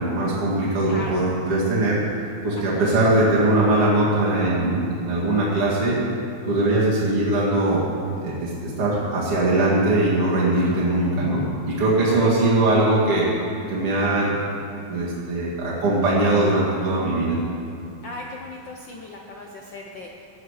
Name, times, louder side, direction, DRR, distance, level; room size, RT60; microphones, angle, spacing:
voice 1, 0.0-2.0 2.4-6.0 6.4-7.8 8.2-13.3 13.7-14.4 14.9-17.4, right 2 dB, 50° right, -7 dB, 2.7 m, -21 dB
voice 2, 0.9-1.2 2.6-2.9 12.1-12.6 13.0-13.2 18.0-20.3, left 2 dB, 75° left, 0 dB, 1.0 m, -38 dB
17.0 x 10.5 x 4.9 m, 2.6 s
omnidirectional pair, 3.3 m